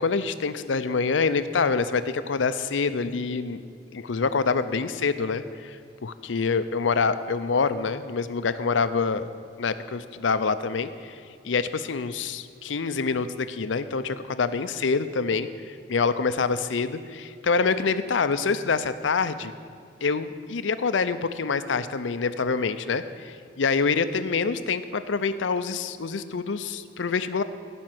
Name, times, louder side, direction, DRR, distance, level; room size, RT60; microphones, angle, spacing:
voice 1, 0.0-3.6 3.9-9.3 9.6-19.5 20.0-27.4, left 4 dB, 80° left, 12 dB, 0.6 m, -26 dB
15.5 x 5.3 x 7.6 m, 2.3 s
head